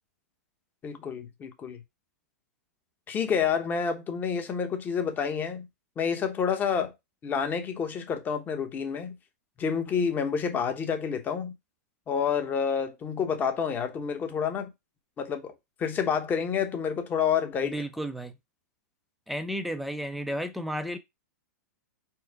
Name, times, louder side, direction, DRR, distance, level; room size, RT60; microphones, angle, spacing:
voice 1, 0.8-1.8 3.1-5.7 6.0-6.9 7.2-9.2 9.6-11.5 12.1-14.7 15.2-15.5 15.8-17.8, left 7 dB, 20° left, 0.9 m, -28 dB
voice 2, 17.6-18.3 19.3-21.0, equal, ahead, 0.5 m, -33 dB
4.6 x 2.1 x 4.6 m
hypercardioid pair, 140°, 9 cm